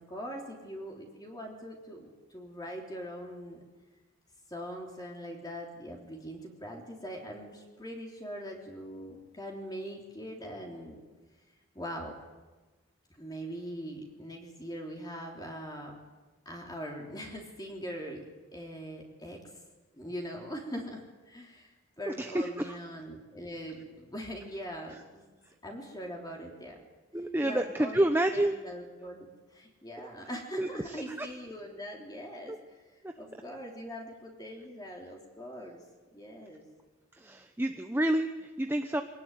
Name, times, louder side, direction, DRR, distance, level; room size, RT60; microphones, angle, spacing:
voice 1, 0.0-3.6 4.5-11.0 11.8-12.1 13.2-16.0 16.5-18.2 18.5-19.4 20.0-25.3 25.6-26.8 27.4-28.0 28.3-32.8 33.2-35.8 36.1-36.6, equal, 20° left, 0 dB, 3.4 m, -42 dB
voice 2, 22.1-22.8 27.1-28.6 30.6-31.3 32.5-32.6 33.0-33.1 37.1-39.0, right 1 dB, 10° right, 6 dB, 0.8 m, -29 dB
24.0 x 18.5 x 9.4 m, 1.2 s
head